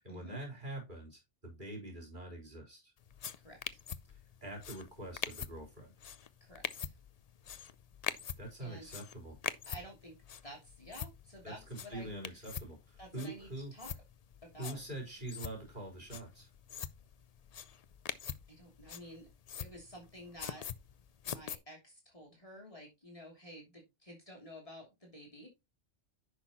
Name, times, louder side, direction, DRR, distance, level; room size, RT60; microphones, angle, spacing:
voice 1, 0.0-2.9 4.1-5.9 8.4-9.4 11.4-13.7 14.6-16.5, right 1 dB, 40° right, 1 dB, 4.0 m, -45 dB
sound 1, 3.0-21.6, left 8 dB, 50° left, 0.4 m, -45 dB
voice 2, 6.4-6.9 8.6-8.9 9.7-10.2 10.4-12.1 13.0-13.9 14.4-14.8 18.5-19.3 19.6-20.7 21.3-25.5, equal, 25° left, 0 dB, 3.0 m, -51 dB
10.0 x 6.3 x 2.9 m, 0.23 s
omnidirectional pair, 1.2 m